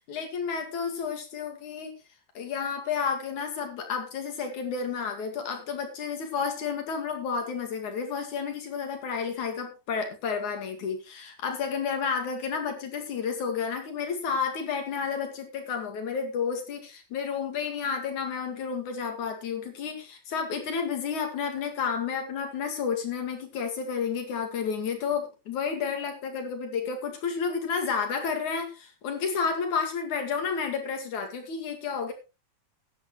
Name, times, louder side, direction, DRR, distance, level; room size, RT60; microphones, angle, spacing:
voice 1, 0.1-1.9 2.3-32.1, left 6 dB, 50° left, 5 dB, 2.9 m, -31 dB
15.0 x 11.0 x 3.2 m, 0.29 s
omnidirectional pair, 5.2 m